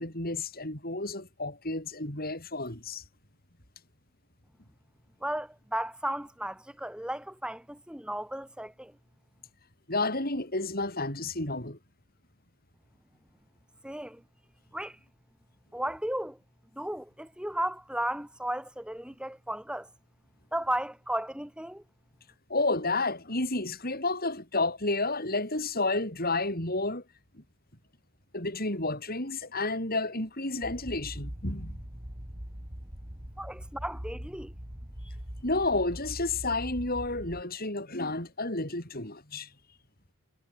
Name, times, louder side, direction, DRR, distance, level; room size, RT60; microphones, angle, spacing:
voice 1, 0.0-3.0 9.9-11.8 22.5-27.0 28.3-31.8 35.4-39.5, left 2 dB, 45° left, 7.4 m, -31 dB
voice 2, 5.2-9.0 13.8-14.2 14.7-15.0 15.7-16.4 16.7-19.9 20.5-21.8 33.4-34.5, right 1 dB, 5° right, 2.6 m, -34 dB
sound 1, 30.6-37.4, equal, 30° right, 3.6 m, -42 dB
head